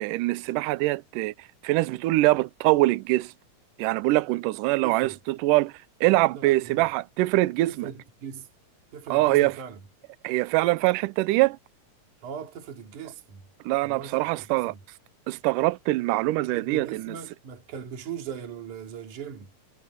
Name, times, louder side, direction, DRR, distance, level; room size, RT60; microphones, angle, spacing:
voice 1, 0.0-1.3 1.6-3.3 3.8-5.7 6.0-7.9 9.1-9.6 10.2-11.6 13.7-14.7 15.3-17.2, right 19 dB, 80° right, 2.2 m, -23 dB
voice 2, 4.8-5.2 6.3-6.9 7.7-8.5 8.9-9.8 12.2-13.4 13.8-14.8 16.5-19.5, right 7 dB, 65° right, 4.0 m, -39 dB
omnidirectional pair, 3.9 m